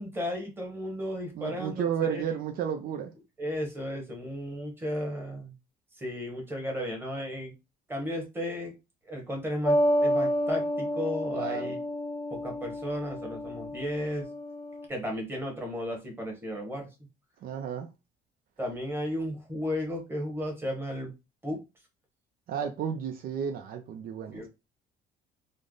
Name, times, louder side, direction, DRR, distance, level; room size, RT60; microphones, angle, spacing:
voice 1, 0.0-2.2 3.4-5.5 6.0-7.5 7.9-8.7 9.1-11.8 12.3-14.3 14.9-16.9 18.6-21.1 21.4-21.6 24.3-24.5, equal, 15° right, 1.2 m, -34 dB
voice 2, 1.4-3.1 11.3-11.7 17.4-17.9 22.5-24.5, right 8 dB, 60° right, 0.5 m, -32 dB
sound 1, 9.6-14.9, equal, 20° left, 0.5 m, -29 dB
3.3 x 2.0 x 3.8 m
cardioid pair, 110°, 17 cm